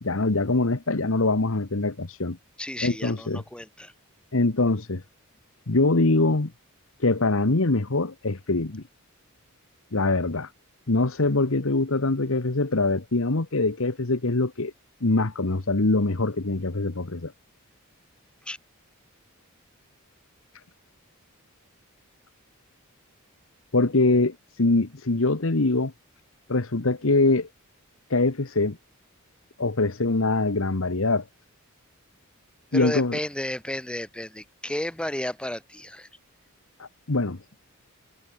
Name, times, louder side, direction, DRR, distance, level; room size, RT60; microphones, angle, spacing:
voice 1, 0.0-2.4 2.8-3.4 4.3-5.0 5.7-6.5 7.0-8.8 9.9-10.5 10.9-14.7 15.0-17.3 23.7-25.9 26.5-27.5 28.1-28.8 29.6-31.2 32.7-33.2 36.8-37.4, left 2 dB, 60° left, 1.2 m, -23 dB
voice 2, 2.6-3.9 18.4-18.6 32.7-36.1, left 1 dB, 5° left, 0.9 m, -32 dB
head